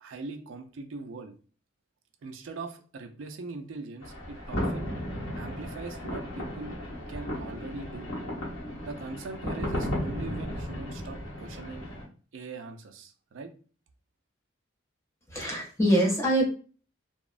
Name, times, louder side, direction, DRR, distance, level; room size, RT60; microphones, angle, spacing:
voice 1, 0.0-1.3 2.2-4.9 5.3-6.7 7.1-8.1 8.8-11.9 12.3-13.5, right 3 dB, 70° right, 6 dB, 0.4 m, -41 dB
sound 1, 4.0-12.0, equal, 90° left, 1.1 m, -35 dB
voice 2, 15.3-16.5, right 1 dB, 15° left, -1 dB, 0.5 m, -24 dB
2.9 x 2.0 x 2.4 m, 0.39 s
head